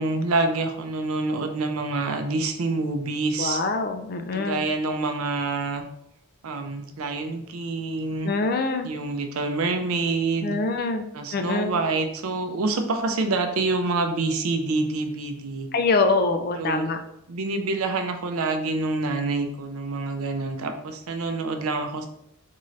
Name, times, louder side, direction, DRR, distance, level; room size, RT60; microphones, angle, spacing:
voice 1, 0.0-3.6 4.3-5.8 6.4-8.3 8.8-10.6 11.1-15.7 16.6-16.9 17.3-22.1, right 3 dB, 80° right, 6 dB, 0.5 m, -27 dB
voice 2, 3.4-4.6 8.2-8.9 10.4-11.1 11.3-11.7 15.7-17.0, left 3 dB, 45° left, 7 dB, 0.4 m, -24 dB
3.7 x 2.6 x 3.1 m, 0.78 s
head